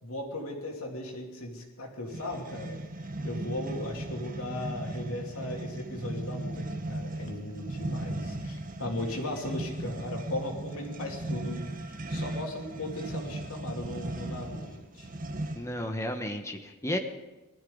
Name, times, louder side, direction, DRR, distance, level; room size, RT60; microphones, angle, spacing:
voice 1, 0.0-2.8 3.2-6.6 6.9-11.6 12.1-15.1, left 1 dB, 90° left, 0 dB, 2.9 m, -37 dB
sound 1, 2.1-15.8, right 1 dB, 40° right, 1.1 m, -37 dB
voice 2, 15.6-17.0, left 1 dB, 15° left, 5 dB, 1.2 m, -33 dB
19.5 x 13.5 x 4.0 m, 1.1 s
head